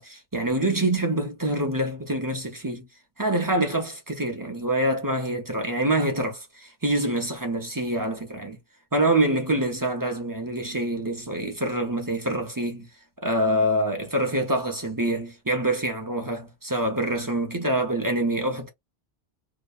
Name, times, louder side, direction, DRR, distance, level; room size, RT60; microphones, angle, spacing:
voice 1, 0.0-2.9 3.2-8.6 8.9-12.9 13.2-18.7, right 1 dB, 25° right, 0.6 m, -26 dB
2.8 x 2.1 x 2.3 m
omnidirectional pair, 1.1 m